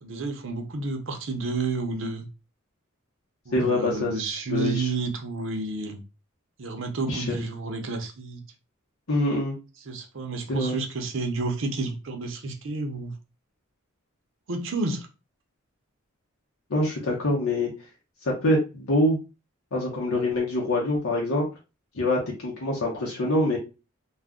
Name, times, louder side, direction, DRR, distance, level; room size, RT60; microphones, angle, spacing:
voice 1, 0.0-2.3 3.5-6.0 6.6-8.4 9.9-13.1 14.5-15.1, right 3 dB, 65° right, 5 dB, 0.6 m, -30 dB
voice 2, 3.5-4.1 4.5-4.9 7.1-7.4 9.1-9.5 10.5-10.8 16.7-17.7 18.2-19.2 19.7-21.4 21.9-23.6, left 1 dB, 85° left, -2 dB, 0.8 m, -25 dB
2.3 x 2.1 x 3.6 m, 0.29 s
head